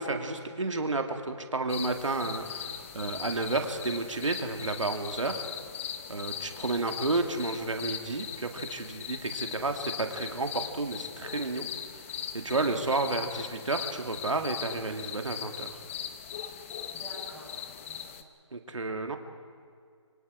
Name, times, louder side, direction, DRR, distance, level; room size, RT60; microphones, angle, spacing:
voice 1, 0.0-5.4 6.1-11.7 12.3-15.7 18.5-19.2, right 3 dB, 80° right, 5 dB, 2.1 m, -31 dB
sound 1, 1.7-18.2, left 9 dB, 25° left, 0.9 m, -40 dB
voice 2, 16.9-17.6 17.8-18.3, right 1 dB, 5° left, -8 dB, 7.8 m, -48 dB
25.5 x 24.0 x 4.9 m, 2.2 s
figure-of-eight pair, 155°, 16 cm